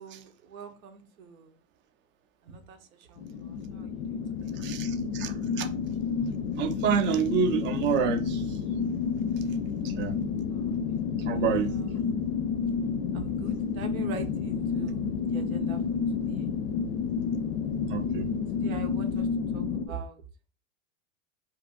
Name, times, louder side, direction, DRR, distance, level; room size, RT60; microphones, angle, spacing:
voice 1, 0.0-1.5 2.4-4.6 10.5-11.0 11.3-12.2 13.1-15.8 16.3-16.5 18.6-19.3 19.5-20.2, right 5 dB, 80° right, 0.9 m, -44 dB
sound 1, 3.2-19.9, left 6 dB, 65° left, 0.5 m, -30 dB
voice 2, 4.5-5.7 6.6-8.6 9.8-10.2 11.3-11.8 17.9-18.3, right 7 dB, 30° right, 0.4 m, -28 dB
2.8 x 2.4 x 3.6 m
hypercardioid pair, 105°, 41 cm